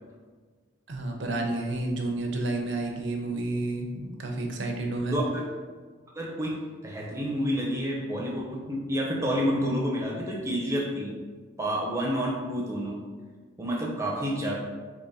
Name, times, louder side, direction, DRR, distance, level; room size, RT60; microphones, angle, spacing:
voice 1, 0.9-5.2, right 2 dB, 65° right, 2 dB, 0.6 m, -30 dB
voice 2, 5.1-5.4 6.1-11.2 11.6-13.0 13.6-14.6, equal, 15° right, -3 dB, 0.7 m, -29 dB
3.7 x 3.0 x 4.1 m, 1.5 s
head